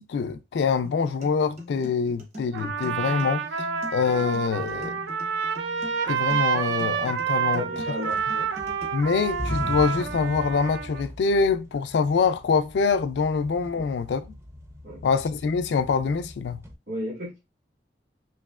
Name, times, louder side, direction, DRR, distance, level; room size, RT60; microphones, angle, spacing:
voice 1, 0.0-3.4 3.9-5.0 6.1-7.6 8.9-14.4 15.0-16.6, left 5 dB, 70° left, 0.3 m, -25 dB
sound 1, 0.8-8.8, left 1 dB, 40° right, 0.8 m, -42 dB
Trumpet, 2.5-11.0, right 7 dB, 85° right, 0.4 m, -29 dB
sound 2, 5.5-6.2 6.6-7.8 8.1-16.8, equal, 15° right, 0.4 m, -40 dB
voice 2, 7.5-8.5 13.7-13.9 14.8-15.0 16.9-17.4, left 1 dB, 65° right, 1.6 m, -34 dB
3.1 x 2.7 x 2.3 m
head